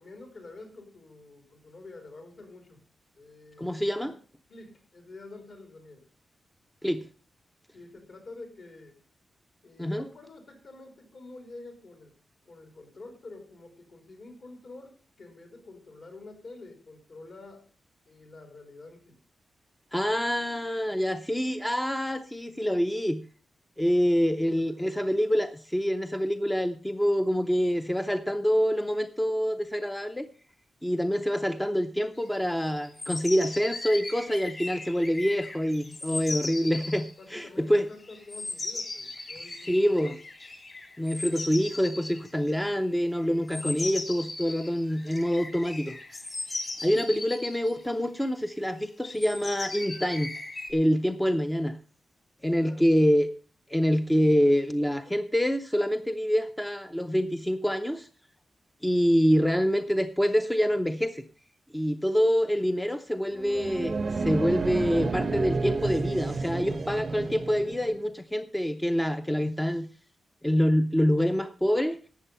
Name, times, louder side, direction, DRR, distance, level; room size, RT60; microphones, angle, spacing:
voice 1, 0.0-2.8 3.2-4.2 4.5-6.0 7.7-9.0 9.6-12.2 12.5-17.6 18.1-19.2 24.0-25.0 37.2-40.2 52.6-52.9, left 2 dB, 55° left, 4 dB, 3.7 m, -48 dB
voice 2, 3.6-4.1 6.8-7.1 9.8-10.1 19.9-23.2 23.8-30.3 30.8-37.9 39.7-40.2 41.0-46.0 46.8-50.3 50.7-51.8 52.4-53.3 53.7-58.1 58.8-61.2 61.7-69.9 70.4-72.0, equal, 5° left, 9 dB, 0.5 m, -26 dB
sound 1, 32.3-37.1 38.0-47.9 48.1-48.3 48.6-50.7, left 2 dB, 35° left, 2.6 m, -38 dB
sound 2, 63.3-68.0, right 4 dB, 40° right, 0.6 m, -31 dB
12.5 x 8.2 x 5.5 m, 0.37 s
wide cardioid pair, 165°, 0 cm